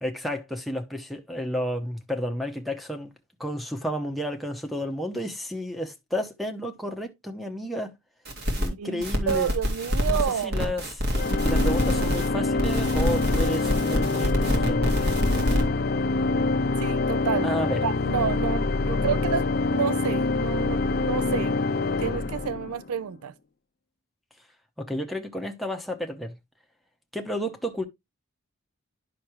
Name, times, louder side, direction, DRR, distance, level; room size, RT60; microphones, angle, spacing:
voice 1, 0.0-3.1 3.4-7.9 8.6-9.5 10.1-11.0 11.4-15.1 17.4-17.8 24.8-26.3 27.1-27.9, equal, ahead, 0.8 m, -31 dB
sound 1, 8.2-8.7 9.0-12.3 12.6-15.6, left 1 dB, 50° right, 2.2 m, -26 dB
voice 2, 8.8-10.7 16.8-17.5 17.8-21.5 22.0-23.3, right 7 dB, 90° right, 0.4 m, -29 dB
Organ, 11.1-23.0, left 3 dB, 45° left, 0.5 m, -25 dB
10.0 x 5.7 x 3.1 m
head